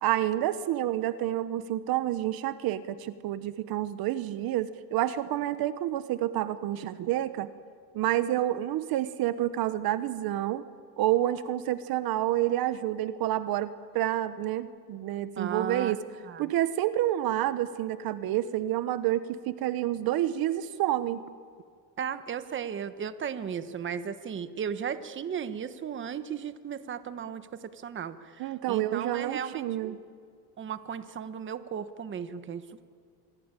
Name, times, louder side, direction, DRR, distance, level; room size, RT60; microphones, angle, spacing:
voice 1, 0.0-7.5 7.9-10.7 11.0-16.0 16.4-21.2 28.4-30.0, right 13 dB, 55° right, 13 dB, 1.1 m, -29 dB
voice 2, 15.4-16.0 16.2-16.5 22.0-30.0 30.6-32.8, right 7 dB, 25° right, 11 dB, 1.2 m, -35 dB
27.0 x 22.5 x 9.0 m, 2.2 s
cardioid pair, 135°, 43 cm